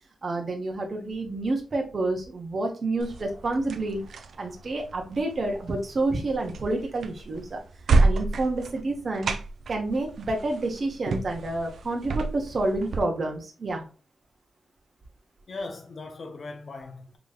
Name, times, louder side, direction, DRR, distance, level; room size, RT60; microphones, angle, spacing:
voice 1, 0.2-4.0 4.4-7.6 8.0-9.3 9.7-13.9, right 2 dB, 45° right, 1.0 m, -29 dB
sound 1, 3.0-13.0, right 3 dB, 75° right, 0.5 m, -30 dB
voice 2, 15.5-17.2, left 3 dB, 50° left, 0.7 m, -39 dB
5.1 x 3.0 x 2.3 m
wide cardioid pair, 115°, 0 cm